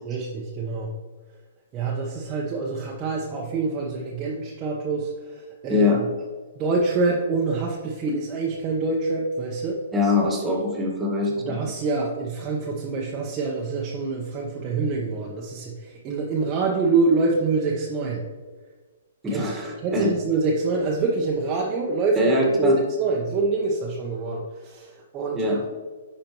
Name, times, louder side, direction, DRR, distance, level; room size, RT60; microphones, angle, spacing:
voice 1, 0.1-0.9 1.7-6.1 6.5-9.8 11.2-18.2 19.3-19.5 19.8-25.7, right 3 dB, 30° right, -2 dB, 0.9 m, -26 dB
voice 2, 5.7-6.0 9.9-11.6 19.2-20.1 22.1-22.8 25.3-25.6, left 2 dB, 15° right, -1 dB, 1.6 m, -22 dB
10.5 x 4.2 x 3.0 m, 1.4 s
hypercardioid pair, 130°, 0 cm